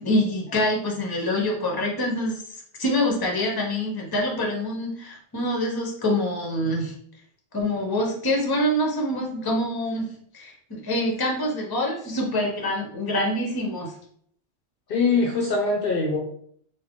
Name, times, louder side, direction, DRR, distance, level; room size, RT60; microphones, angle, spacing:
voice 1, 0.0-2.4 2.8-6.9 7.5-13.9, left 1 dB, 25° left, -1 dB, 0.7 m, -25 dB
voice 2, 14.9-16.2, left 3 dB, 60° left, 0 dB, 0.7 m, -22 dB
3.5 x 2.2 x 3.6 m, 0.63 s
omnidirectional pair, 1.2 m